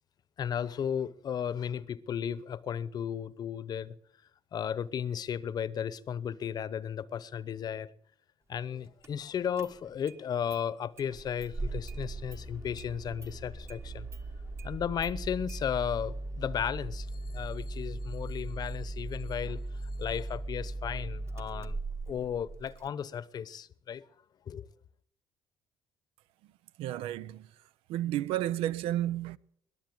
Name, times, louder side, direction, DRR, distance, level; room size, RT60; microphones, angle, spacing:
voice 1, 0.4-3.9 4.5-7.9 8.5-14.1 14.6-19.6 20.0-21.8 22.1-24.1 24.5-24.7, left 8 dB, 45° left, 0.9 m, -35 dB
Engine starting, 9.0-9.1 9.6-10.2 10.5-10.6 11.0-22.9, right 2 dB, 30° right, 1.3 m, -39 dB
voice 2, 26.8-27.4 27.9-29.4, right 13 dB, 85° right, 0.6 m, -31 dB
21.5 x 7.8 x 7.8 m
cardioid pair, 100°, 9 cm